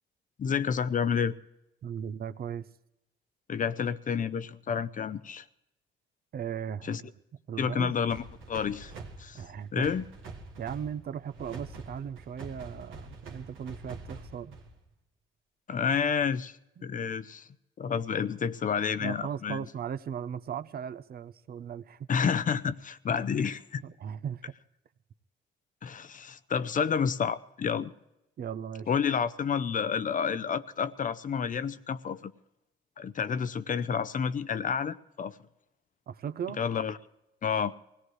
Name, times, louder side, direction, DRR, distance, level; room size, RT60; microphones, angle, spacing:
voice 1, 0.4-1.3 3.5-5.4 6.8-7.0 7.6-8.9 9.2-9.4 9.7-10.0 15.7-16.6 16.8-17.5 17.8-19.6 22.1-23.8 25.8-27.9 28.9-32.3 33.0-35.4 36.6-37.0 37.4-37.7, left 6 dB, 40° left, 13 dB, 0.6 m, -29 dB
voice 2, 1.8-2.7 6.3-7.0 7.5-7.9 9.3-9.9 10.6-14.6 16.8-16.9 19.0-22.1 23.8-24.4 28.4-28.9 36.1-36.6, right 8 dB, 50° right, 12 dB, 0.6 m, -37 dB
sound 1, 8.1-14.9, right 3 dB, 85° right, 1.6 m, -46 dB
23.5 x 17.5 x 3.2 m, 0.90 s
cardioid pair, 90°, 20 cm